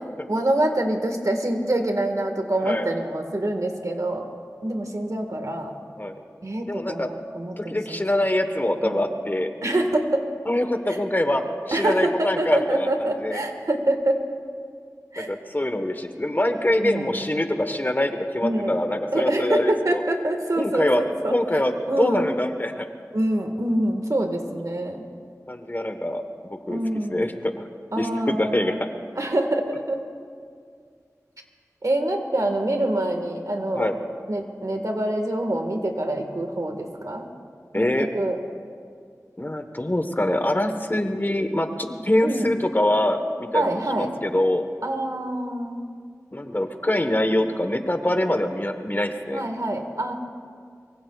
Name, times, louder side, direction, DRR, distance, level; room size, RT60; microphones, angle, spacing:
voice 1, 0.3-4.3 4.6-5.7 6.4-8.0 8.8-9.1 9.6-10.2 10.9-11.0 11.7-14.2 15.1-15.3 16.8-17.2 18.4-18.7 19.1-21.3 21.9-22.2 23.1-25.1 26.7-27.3 27.9-28.8 29.2-30.0 31.8-33.9 34.3-37.3 37.7-38.4 42.2-42.5 43.5-44.1 44.8-45.9 49.3-50.1, right 1 dB, 65° right, 4 dB, 1.6 m, -25 dB
voice 2, 6.7-7.1 7.6-9.5 10.5-12.9 13.2-13.4 15.2-20.0 20.6-21.0 21.3-22.9 25.5-26.8 27.1-27.7 28.0-28.7 33.7-33.9 37.7-38.1 39.4-44.6 46.3-49.4, left 1 dB, 35° left, 7 dB, 1.2 m, -24 dB
23.5 x 23.5 x 2.4 m, 2.2 s
wide cardioid pair, 50°, 6 cm